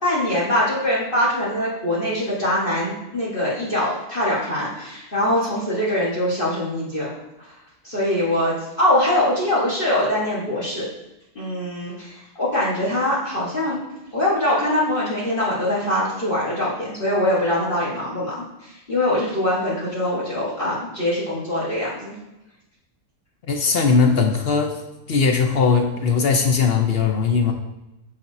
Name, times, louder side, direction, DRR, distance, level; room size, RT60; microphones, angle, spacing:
voice 1, 0.0-7.1 7.8-10.9 11.3-13.8 14.1-22.1, left 1 dB, 35° left, -7 dB, 1.6 m, -23 dB
voice 2, 23.5-24.8 25.1-27.5, left 5 dB, 60° left, 4 dB, 0.6 m, -19 dB
7.5 x 5.2 x 2.7 m, 0.96 s
omnidirectional pair, 1.7 m